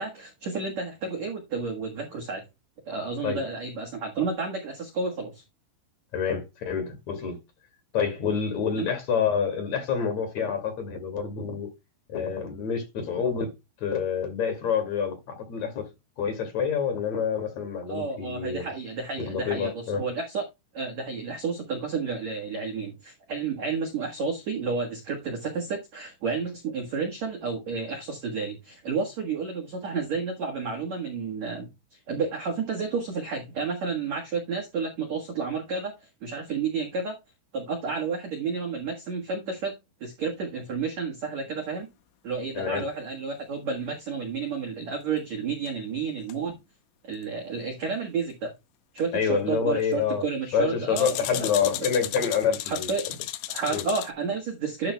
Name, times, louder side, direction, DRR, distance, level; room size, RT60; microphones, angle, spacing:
voice 1, 0.0-2.4 2.8-5.4 8.7-8.9 17.9-20.4 20.7-37.2 37.5-39.7 40.0-41.9 42.2-46.6 47.0-48.5 48.9-51.4 52.6-53.0 53.5-54.9, right 4 dB, 70° right, 1.7 m, -31 dB
voice 2, 6.1-7.4 7.9-11.7 12.1-13.5 13.8-15.9 16.2-18.7 19.2-20.0 42.5-42.9 49.1-50.2 50.5-52.9 53.7-53.8, left 7 dB, 45° left, 2.9 m, -27 dB
sound 1, 45.7-45.8 46.3-46.4 49.0-49.1 51.0-54.1, left 14 dB, 80° left, 2.8 m, -34 dB
12.0 x 7.6 x 2.2 m
omnidirectional pair, 5.6 m